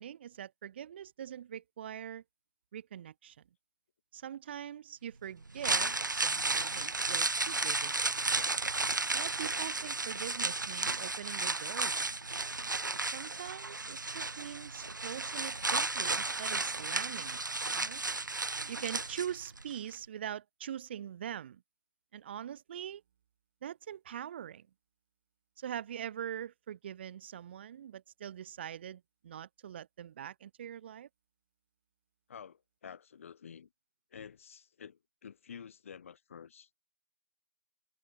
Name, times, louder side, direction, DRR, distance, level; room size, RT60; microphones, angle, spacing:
voice 1, 0.0-2.2 2.7-3.4 4.1-8.5 9.1-12.1 13.1-18.0 18.7-21.6 22.1-23.0 23.6-24.7 25.6-31.1, right 10 dB, 35° right, 1.6 m, -43 dB
sound 1, 5.4-19.6 19.9-20.0, right 3 dB, 75° right, 1.2 m, -33 dB
voice 2, 32.3-33.7 34.1-36.8, left 7 dB, 40° left, 2.7 m, -50 dB
figure-of-eight pair, 145°, 10 cm